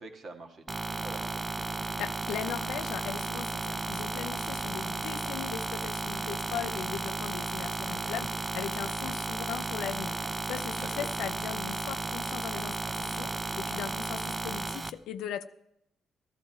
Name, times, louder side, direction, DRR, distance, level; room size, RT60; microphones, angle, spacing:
voice 1, 0.0-1.4 10.7-11.3, right 2 dB, 55° right, 4 dB, 1.8 m, -46 dB
sound 1, 0.7-14.9, right 2 dB, 25° right, 0.5 m, -34 dB
voice 2, 2.0-15.4, left 10 dB, 85° left, 9 dB, 0.5 m, -39 dB
14.5 x 12.5 x 4.4 m, 0.78 s
cardioid pair, 90°, 0 cm